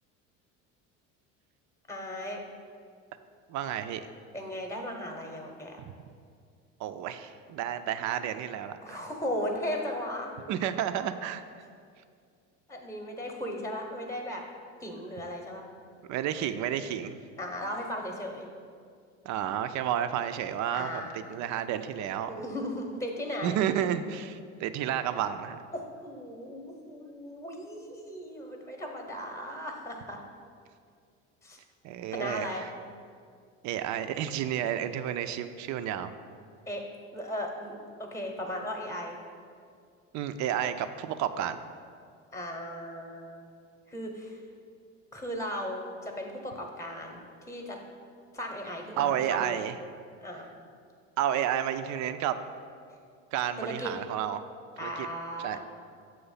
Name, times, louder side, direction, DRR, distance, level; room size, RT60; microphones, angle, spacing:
voice 1, 1.9-2.4 4.3-5.8 8.8-10.3 12.7-14.4 14.8-15.6 17.4-18.5 20.7-21.2 22.3-23.6 25.7-30.2 31.4-31.6 32.1-32.6 36.7-37.7 38.0-39.2 42.3-43.5 43.9-44.4 45.1-47.8 48.3-49.6 50.2-50.5 53.6-53.9 54.8-55.6, left 1 dB, 10° left, 2 dB, 0.9 m, -36 dB
voice 2, 3.5-4.1 5.8-5.9 6.8-9.0 10.5-11.4 16.1-17.2 19.2-21.0 21.3-22.4 23.4-25.6 31.8-32.6 33.6-36.1 40.1-41.6 49.0-49.8 51.2-52.4 53.3-54.4 54.8-55.1 55.4-55.6, right 10 dB, 50° right, 10 dB, 0.5 m, -31 dB
7.0 x 3.1 x 5.6 m, 2.2 s
hypercardioid pair, 85°, 37 cm